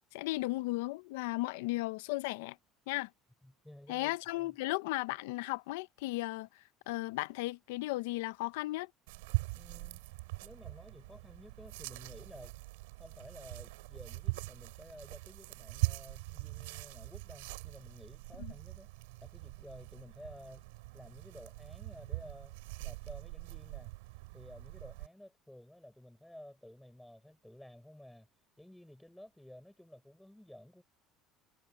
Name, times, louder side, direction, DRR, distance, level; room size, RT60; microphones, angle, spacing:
voice 1, 0.1-2.6 2.9-3.1 3.9-8.9 18.4-18.5, left 20 dB, 85° left, 0.6 m, -35 dB
voice 2, 3.4-4.5 9.5-10.0 10.4-12.5 13.0-18.9 19.2-20.7 20.9-23.9 24.3-30.8, left 1 dB, 5° left, 6.2 m, -53 dB
sound 1, 9.1-25.1, right 24 dB, 90° right, 6.7 m, -42 dB
supercardioid pair, 100°, 0 cm